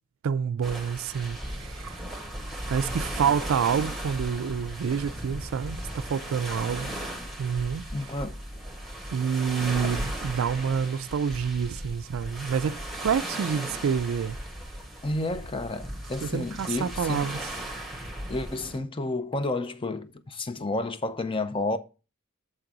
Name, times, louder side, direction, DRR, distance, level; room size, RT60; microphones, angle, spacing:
voice 1, 0.2-2.0 2.7-6.9 7.4-8.1 9.1-14.4 16.2-17.5, right 7 dB, 65° right, 0.3 m, -28 dB
sound 1, 0.6-18.8, right 1 dB, ahead, 1.8 m, -37 dB
voice 2, 7.9-8.3 9.8-9.9 15.0-17.3 18.3-21.8, left 2 dB, 25° left, 0.6 m, -31 dB
7.5 x 3.9 x 5.9 m
head